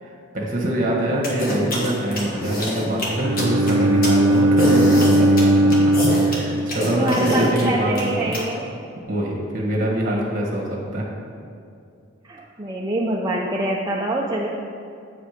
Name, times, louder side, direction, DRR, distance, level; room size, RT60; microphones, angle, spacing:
voice 1, 0.0-5.9 6.2-8.4 9.1-11.1, right 1 dB, 40° right, -2 dB, 1.6 m, -24 dB
sound 1, 1.2-8.4, equal, 45° left, 1.7 m, -25 dB
Bowed string instrument, 3.1-7.3, right 1 dB, 80° right, 0.5 m, -18 dB
voice 2, 6.8-8.7 12.2-14.5, right 1 dB, 20° right, -3 dB, 0.5 m, -25 dB
8.7 x 5.1 x 5.1 m, 2.4 s
head